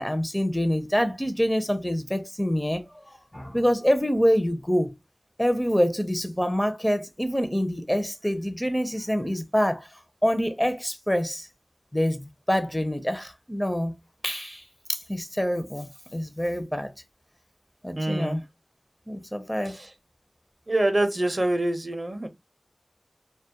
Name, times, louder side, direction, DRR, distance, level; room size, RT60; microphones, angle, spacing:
voice 1, 0.0-4.9 5.4-9.9 10.2-11.5 11.9-13.9 14.2-14.6 14.9-16.9 17.8-18.4 19.1-19.8, equal, 10° left, 0.4 m, -26 dB
voice 2, 18.0-18.4 19.7-19.9 20.7-22.3, right 1 dB, 45° right, 0.5 m, -25 dB
2.2 x 2.0 x 2.7 m
wide cardioid pair, 40°, 0 cm